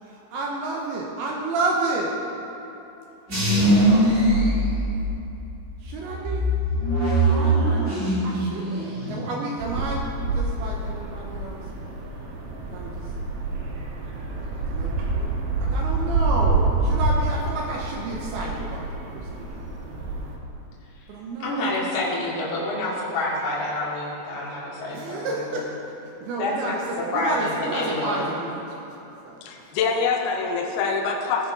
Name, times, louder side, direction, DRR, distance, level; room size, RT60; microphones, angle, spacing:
voice 1, 0.0-2.2 3.5-4.7 5.0-5.2 5.8-6.5 7.3-10.1 10.3-11.6 12.7-13.1 14.7-15.3 15.6-18.9 19.1-19.6 21.1-21.8 24.9-28.8 29.2-29.7, right 2 dB, 85° right, -2 dB, 2.2 m, -31 dB
sound 1, 3.3-5.3 5.8-8.4 8.7-9.2, right 1 dB, 30° right, 1.3 m, -21 dB
sound 2, 9.6-20.4, right 3 dB, 70° right, 2.1 m, -27 dB
voice 2, 21.4-25.2 25.5-25.6 26.4-26.7 27.1-28.2, left 2 dB, 45° left, -7 dB, 3.2 m, -27 dB
voice 3, 29.4-31.5, left 5 dB, 80° left, 1 dB, 2.3 m, -25 dB
19.0 x 6.7 x 5.2 m, 3.0 s
omnidirectional pair, 5.7 m